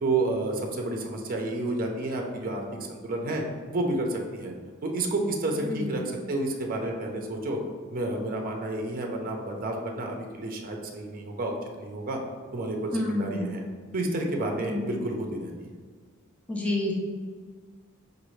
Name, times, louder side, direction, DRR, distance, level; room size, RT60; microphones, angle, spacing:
voice 1, 0.0-2.6 2.9-3.4 3.7-4.5 4.8-7.6 7.9-12.2 12.5-13.6 13.9-15.7, right 2 dB, 45° right, 1 dB, 0.5 m, -30 dB
voice 2, 12.9-13.4 14.6-14.9 16.5-16.9, left 2 dB, 5° left, -3 dB, 0.5 m, -29 dB
5.0 x 2.6 x 3.1 m, 1.5 s
head